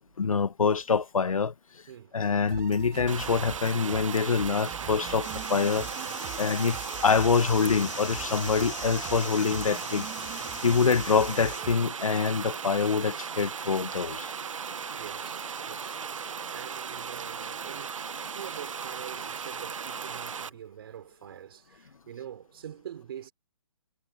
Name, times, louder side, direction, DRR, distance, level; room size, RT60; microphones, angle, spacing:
voice 1, 0.2-1.5 2.1-5.9 6.4-10.1 10.6-14.3, left 5 dB, 85° left, 1.7 m, -25 dB
voice 2, 1.9-2.2 6.2-6.4 10.5-10.7 14.9-23.3, right 10 dB, 45° right, 5.0 m, -45 dB
sound 1, 2.5-11.7, right 22 dB, 20° right, 3.1 m, -43 dB
sound 2, 3.1-20.5, right 6 dB, 70° right, 1.6 m, -37 dB
sound 3, 5.2-11.6, left 6 dB, 65° left, 7.6 m, -42 dB
hypercardioid pair, 160°, 17 cm